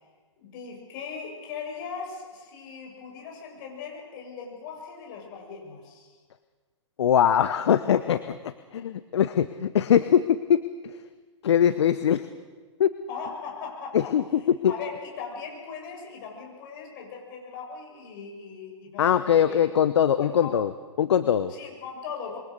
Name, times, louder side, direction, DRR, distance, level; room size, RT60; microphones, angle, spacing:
voice 1, 0.4-6.1 13.1-14.0 14.7-19.7 20.2-20.5 21.6-22.4, left 6 dB, 45° left, 1 dB, 7.3 m, -39 dB
voice 2, 7.0-11.0 11.4-12.3 12.8-12.9 13.9-14.7 19.0-20.7 21.0-21.5, left 9 dB, 60° left, 12 dB, 1.0 m, -22 dB
26.5 x 23.0 x 6.6 m, 1.4 s
figure-of-eight pair, 115°, 16 cm